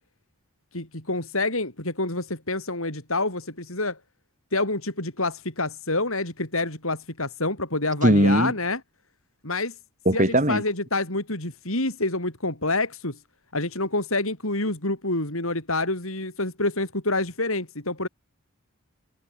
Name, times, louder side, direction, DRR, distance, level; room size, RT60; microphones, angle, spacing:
voice 1, 0.7-4.0 4.5-8.8 9.4-9.7 10.1-13.2 13.5-18.1, left 2 dB, 70° left, 7.6 m, -27 dB
voice 2, 8.0-8.5 10.1-10.6, right 1 dB, 35° right, 5.7 m, -19 dB
head